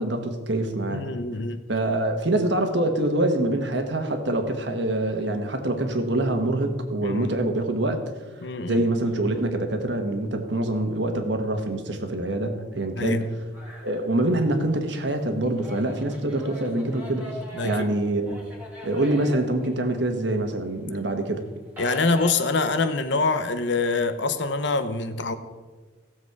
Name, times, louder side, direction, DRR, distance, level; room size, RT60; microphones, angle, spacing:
voice 1, 0.0-1.0 1.7-8.2 8.7-13.3 13.8-17.3 17.6-18.4 18.8-21.4, right 1 dB, 60° right, 6 dB, 1.4 m, -25 dB
voice 2, 0.9-1.6 7.0-7.3 8.4-8.8 13.0-13.2 17.5-17.9 21.8-25.4, left 3 dB, 60° left, 10 dB, 0.8 m, -25 dB
sound 1, 13.5-14.6 15.0-20.4 20.7-22.3, left 1 dB, 10° right, 1.9 m, -41 dB
16.0 x 7.4 x 4.7 m, 1.3 s
head